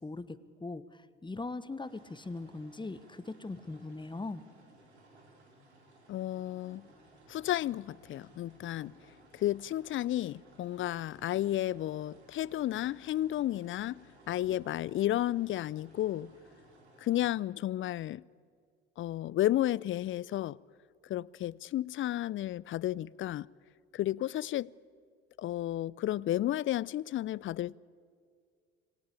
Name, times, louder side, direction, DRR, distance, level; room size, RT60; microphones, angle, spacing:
voice 1, 0.0-4.4, left 3 dB, 15° left, 1.3 m, -40 dB
sound 1, 1.8-17.3, right 2 dB, 85° right, 3.7 m, -60 dB
voice 2, 6.1-6.9 7.3-8.9 9.3-16.3 17.0-18.2 19.0-20.6 21.1-23.5 23.9-24.7 25.4-27.8, left 13 dB, 40° left, 0.5 m, -32 dB
27.0 x 20.0 x 8.6 m
hypercardioid pair, 55°, 32 cm